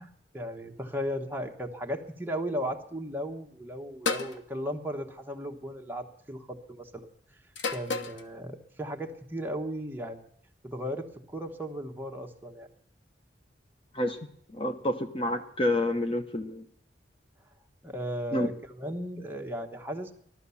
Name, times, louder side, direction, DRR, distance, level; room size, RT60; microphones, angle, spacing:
voice 1, 0.0-7.1 7.7-10.2 10.6-12.7 17.8-20.1, equal, 10° right, 2 dB, 1.2 m, -36 dB
sound 1, 4.1-4.4 5.6-5.9 7.6-8.2, left 4 dB, 85° left, 1.0 m, -31 dB
voice 2, 14.5-16.6 18.3-18.5, left 1 dB, 30° left, 8 dB, 0.8 m, -28 dB
16.0 x 12.0 x 7.1 m, 0.68 s
head